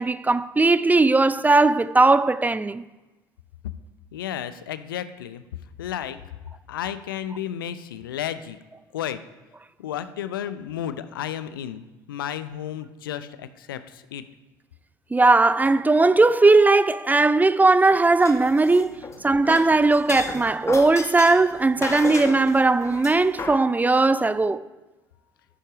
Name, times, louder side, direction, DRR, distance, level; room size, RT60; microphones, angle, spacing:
voice 1, 0.0-2.8 15.1-24.6, right 3 dB, 15° right, 0.5 m, -18 dB
voice 2, 4.1-5.4 5.8-6.2 6.7-8.6 8.9-9.2 9.8-14.2, left 10 dB, 80° left, 0.6 m, -32 dB
sound 1, 18.2-19.2 19.4-23.6, left 4 dB, 25° left, 1.6 m, -34 dB
11.5 x 9.9 x 5.0 m
figure-of-eight pair, 60°, 11 cm